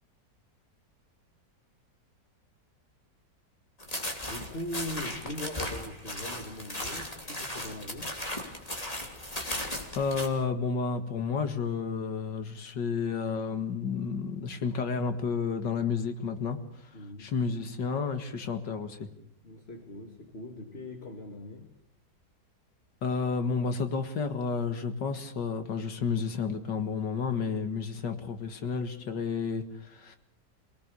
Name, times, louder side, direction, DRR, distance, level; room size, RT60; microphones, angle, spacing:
sound 1, 3.8-10.3, left 1 dB, 20° left, 3.2 m, -37 dB
voice 1, 4.3-8.1 9.3-9.4 16.9-17.3 19.4-21.7, left 1 dB, 35° left, 4 dB, 2.3 m, -40 dB
voice 2, 9.9-16.6 17.2-19.1 23.0-30.2, left 5 dB, 90° left, 8 dB, 2.4 m, -31 dB
27.0 x 18.5 x 6.9 m, 0.74 s
omnidirectional pair, 1.8 m